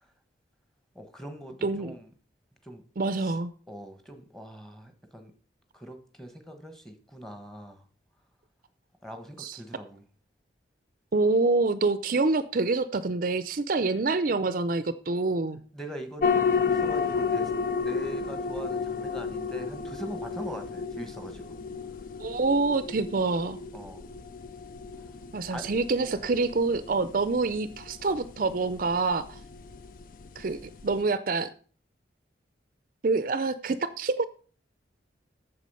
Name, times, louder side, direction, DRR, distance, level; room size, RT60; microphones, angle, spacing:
voice 1, 0.9-2.1 2.6-2.8 3.2-3.4 3.7-5.3 5.7-7.9 9.0-10.0 15.7-17.5 17.8-21.6 23.7-24.0 25.5-25.7, equal, 5° left, 7 dB, 1.2 m, -42 dB
voice 2, 1.6-1.9 3.0-3.5 9.4-9.6 11.1-15.6 22.2-23.6 25.3-29.4 30.4-31.5 33.0-34.3, right 3 dB, 45° right, 13 dB, 0.5 m, -26 dB
sound 1, 16.2-31.0, left 5 dB, 45° left, 0.4 m, -32 dB
8.3 x 7.0 x 5.6 m, 0.42 s
head